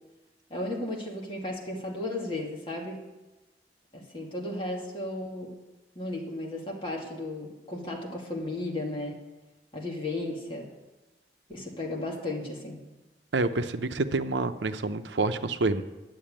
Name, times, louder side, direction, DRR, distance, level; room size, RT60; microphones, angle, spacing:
voice 1, 0.5-3.0 3.9-5.5 6.0-9.2 9.7-10.7 11.5-12.8, left 2 dB, 30° left, -1 dB, 2.2 m, -34 dB
voice 2, 13.3-15.8, right 3 dB, 85° right, 9 dB, 0.7 m, -28 dB
10.5 x 7.4 x 8.8 m, 1.1 s
head